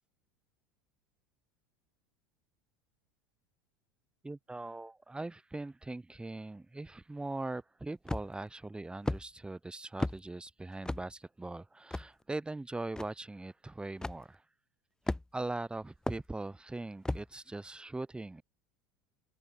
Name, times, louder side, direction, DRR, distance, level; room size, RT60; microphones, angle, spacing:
voice 1, 4.2-14.4 15.1-18.4, right 2 dB, 10° right, 1.3 m, -41 dB
sound 1, 8.1-8.5 9.1-9.2 10.0-10.2 10.8-11.0 11.9-12.1 13.0-13.1 14.0-14.2 15.1-15.5 16.1-16.2 17.0-17.3, left 2 dB, 5° left, 0.5 m, -34 dB
figure-of-eight pair, 75°, 10 cm